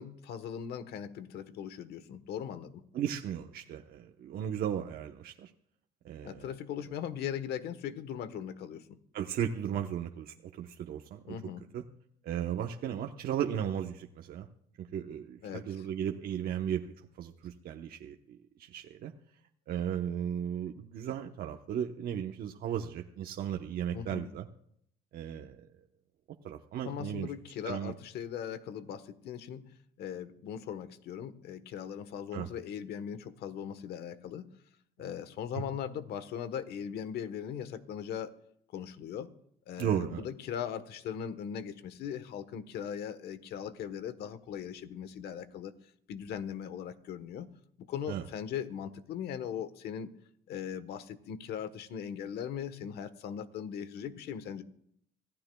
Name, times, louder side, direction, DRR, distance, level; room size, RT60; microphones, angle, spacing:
voice 1, 0.0-2.8 6.2-9.0 11.3-11.7 15.4-15.8 23.9-24.3 26.8-34.5 35.0-38.3 38.7-39.3 39.7-45.7 46.1-47.5 47.8-50.1 50.5-54.6, left 8 dB, 70° left, 12 dB, 1.2 m, -39 dB
voice 2, 2.9-5.5 6.0-6.5 9.1-11.4 11.7-11.8 12.2-14.5 14.8-19.1 19.7-24.5 25.1-25.6 26.4-27.3 27.6-27.9 32.3-32.5 39.8-40.2 48.1-48.2, right 9 dB, 65° right, 3 dB, 1.0 m, -35 dB
26.0 x 15.5 x 2.3 m, 0.70 s
cardioid pair, 110°, 17 cm